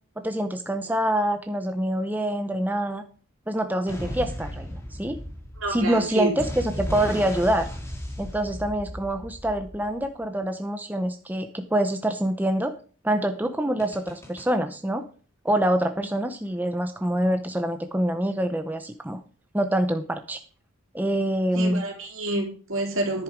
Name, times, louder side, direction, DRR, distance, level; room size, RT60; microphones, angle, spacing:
voice 1, 0.2-3.0 3.5-5.2 5.7-7.7 8.2-12.7 13.0-15.1 15.4-19.2 19.5-20.4 20.9-21.8, right 1 dB, 10° right, 7 dB, 0.6 m, -25 dB
sound 1, 3.9-10.3 13.8-14.4, equal, 10° left, 2.5 m, -35 dB
voice 2, 5.6-6.4 21.5-23.2, right 1 dB, 70° right, 2 dB, 3.1 m, -28 dB
10.5 x 7.9 x 5.0 m, 0.40 s
head